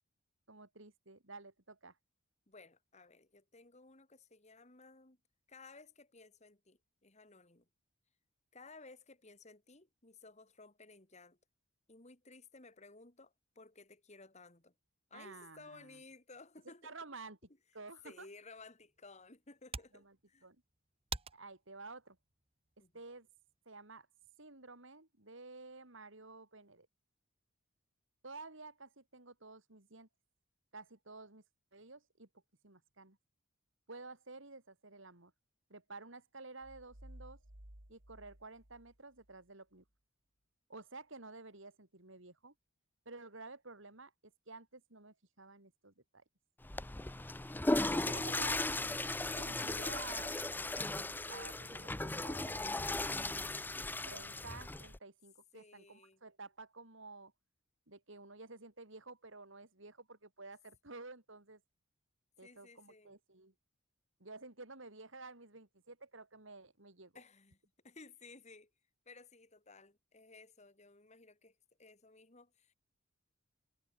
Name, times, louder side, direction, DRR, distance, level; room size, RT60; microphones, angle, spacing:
voice 1, 0.5-2.0 15.1-16.0 16.6-17.4 17.7-18.3 19.9-20.1 20.4-20.6 21.3-22.2 22.9-23.3 23.6-24.1 24.4-26.9 28.2-30.1 30.7-31.4 31.7-32.3 32.6-33.2 33.9-35.3 35.7-37.4 37.9-39.8 40.7-42.5 43.0-46.2 47.9-48.6 49.3-50.7 51.3-52.8 54.1-57.3 57.9-61.6 62.4-63.5 64.2-67.2, right 3 dB, 65° right, 3.3 m, -52 dB
voice 2, 2.5-5.2 5.5-7.7 8.5-11.4 11.9-14.7 15.1-16.9 18.0-20.5 22.8-22.9 47.9-48.8 55.5-56.2 62.4-63.1 67.1-67.6 67.8-68.7 69.1-72.7, left 3 dB, 35° left, 2.3 m, -57 dB
sound 1, 18.6-23.6, right 5 dB, 30° right, 1.4 m, -50 dB
sound 2, 36.6-39.4, right 1 dB, 90° right, 4.2 m, -56 dB
Water / Toilet flush, 46.6-55.0, left 2 dB, 10° left, 0.5 m, -37 dB
head